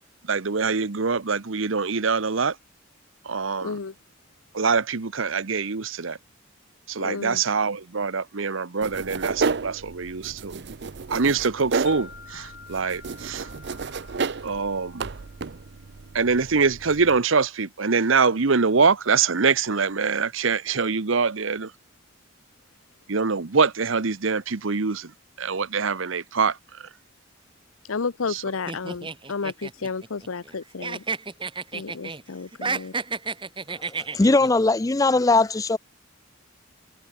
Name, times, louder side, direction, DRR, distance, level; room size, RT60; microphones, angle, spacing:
voice 1, 0.3-2.5 3.3-3.7 4.5-6.2 6.9-10.5 11.1-13.4 14.4-15.1 16.1-21.7 23.1-25.1 25.4-26.6 28.3-28.4, right 5 dB, 75° right, 1.0 m, -24 dB
voice 2, 3.6-3.9 7.0-7.4 27.9-31.0 31.7-32.9, left 4 dB, 90° left, 0.8 m, -32 dB
sound 1, 8.8-17.2, right 4 dB, 55° right, 0.6 m, -32 dB
Wind chime, 11.9-16.1, left 6 dB, 55° left, 5.7 m, -48 dB
sound 2, 28.7-30.5 30.8-32.2 32.5-34.5, right 4 dB, 25° right, 1.8 m, -31 dB
voice 3, 34.1-35.8, left 3 dB, 15° left, 0.4 m, -19 dB
head